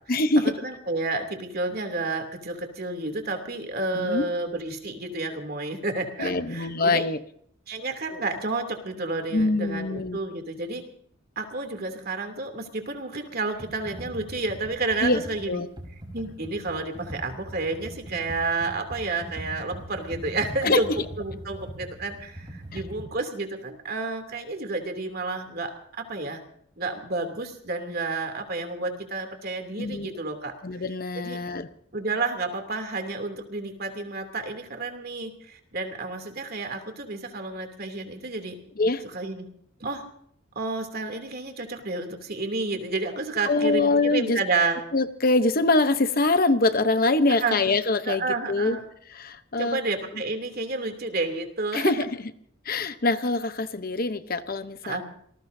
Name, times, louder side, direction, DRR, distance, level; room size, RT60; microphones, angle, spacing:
voice 1, 0.1-0.5 3.9-4.3 6.2-7.2 9.3-10.2 15.0-15.2 15.5-15.7 20.6-20.8 29.8-30.2 30.6-31.7 38.8-39.0 43.5-44.4 44.9-48.2 48.5-48.8 49.2-49.8 51.7-52.0 52.7-55.0, left 2 dB, 45° left, 10 dB, 0.9 m, -24 dB
voice 2, 0.6-7.0 7.7-10.8 11.4-15.6 16.1-20.9 21.2-25.7 26.1-26.4 26.8-30.5 31.1-31.4 31.9-38.5 39.0-39.5 39.8-40.0 40.5-44.8 47.3-47.6 48.1-48.8 49.6-51.9 54.8-55.0, right 3 dB, 50° right, 5 dB, 2.9 m, -30 dB
Computer keyboard, 13.5-23.0, equal, 25° right, 4.1 m, -40 dB
27.0 x 20.0 x 2.7 m, 0.62 s
head